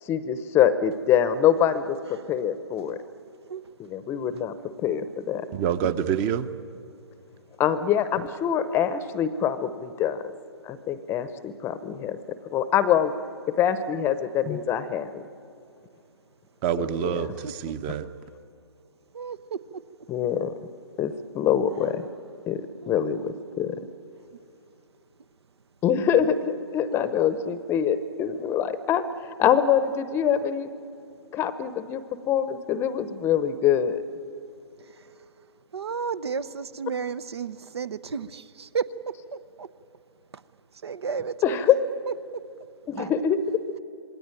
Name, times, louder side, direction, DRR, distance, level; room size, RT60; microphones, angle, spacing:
voice 1, 0.0-3.0 3.8-5.5 7.6-10.2 10.6-13.2 13.5-15.2 16.8-17.3 20.1-20.5 21.0-22.1 22.5-23.8 25.8-30.7 31.3-34.0 41.4-41.8 42.9-43.6, left 9 dB, 15° left, 13 dB, 0.8 m, -25 dB
voice 2, 5.5-6.5 16.6-18.1, right 9 dB, 25° right, 13 dB, 0.9 m, -27 dB
voice 3, 17.4-17.7 19.1-19.8 22.8-23.9 34.8-35.1 35.7-39.7 40.3-40.4 40.8-41.7 42.1-42.4 43.0-43.2, right 6 dB, 65° right, 15 dB, 0.9 m, -34 dB
26.5 x 20.5 x 9.1 m, 2.7 s
figure-of-eight pair, 135°, 15 cm